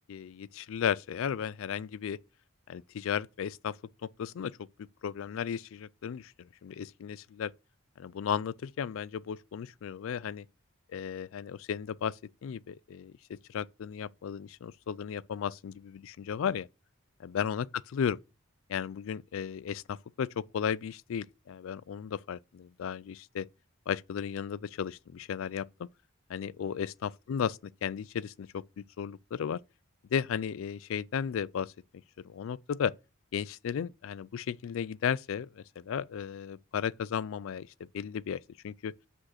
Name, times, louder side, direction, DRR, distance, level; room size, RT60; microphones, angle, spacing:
voice 1, 0.0-2.2 2.7-3.8 4.2-4.6 5.0-7.5 8.0-10.4 10.9-16.7 17.2-17.7 17.9-18.2 18.7-23.5 23.9-25.9 26.3-29.6 30.1-31.7 32.2-32.9 33.3-37.7 37.9-38.9, left 7 dB, 65° left, 0.3 m, -35 dB
6.2 x 5.2 x 5.8 m
head